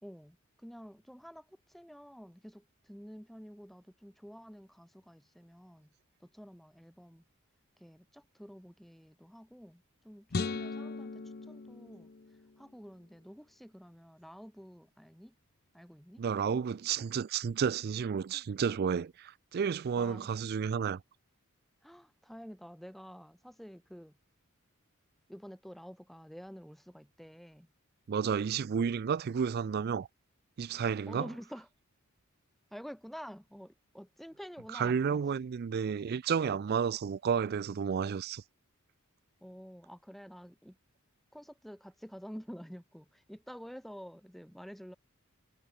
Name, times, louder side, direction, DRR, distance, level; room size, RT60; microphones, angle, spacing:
voice 1, 0.0-5.9 6.2-7.2 7.8-12.1 12.6-15.3 15.7-16.2 18.3-18.5 20.0-20.4 21.8-24.2 25.3-27.7 31.0-31.7 32.7-35.2 39.4-40.8 41.3-45.0, equal, ahead, 1.9 m, -49 dB
sound 1, 10.3-12.7, left 3 dB, 45° left, 0.7 m, -38 dB
voice 2, 16.2-21.0 28.1-30.1 30.6-31.3 34.7-38.4, right 6 dB, 45° right, 0.3 m, -31 dB
head